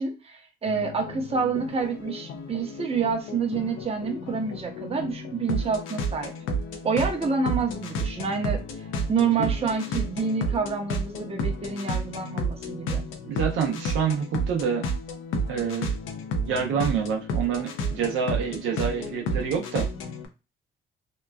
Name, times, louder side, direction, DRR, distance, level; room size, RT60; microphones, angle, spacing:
voice 1, 0.0-6.3 6.8-8.6 9.1-13.1, right 5 dB, 30° right, 3 dB, 0.7 m, -28 dB
sound 1, 0.7-20.3, right 1 dB, 85° left, 0.6 m, -32 dB
voice 2, 13.2-14.9 15.5-15.9 16.4-19.9, right 7 dB, 80° right, 2 dB, 0.7 m, -27 dB
2.9 x 2.3 x 2.2 m, 0.28 s
cardioid pair, 90°, 20 cm